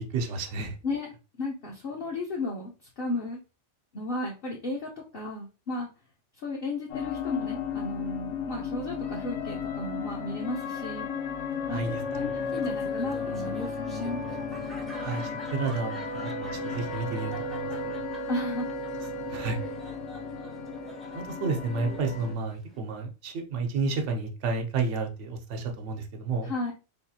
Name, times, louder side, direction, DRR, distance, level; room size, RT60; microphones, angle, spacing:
voice 1, 0.1-0.7 11.7-12.3 15.0-15.2 15.5-18.0 19.3-19.6 21.1-26.5, right 4 dB, 85° right, 4 dB, 1.0 m, -31 dB
voice 2, 1.4-3.4 3.9-5.9 6.4-11.1 11.7-11.8 12.1-14.2 18.3-18.7 26.4-26.7, left 2 dB, 55° left, -2 dB, 0.8 m, -34 dB
sound 1, 6.9-22.3, left 4 dB, 85° left, 0.9 m, -34 dB
Wind instrument woodwind instrument, 11.1-18.5, right 5 dB, 60° right, 0.7 m, -47 dB
Laughter, 12.4-22.8, equal, ahead, 0.4 m, -48 dB
3.6 x 2.4 x 2.7 m, 0.31 s
omnidirectional pair, 1.2 m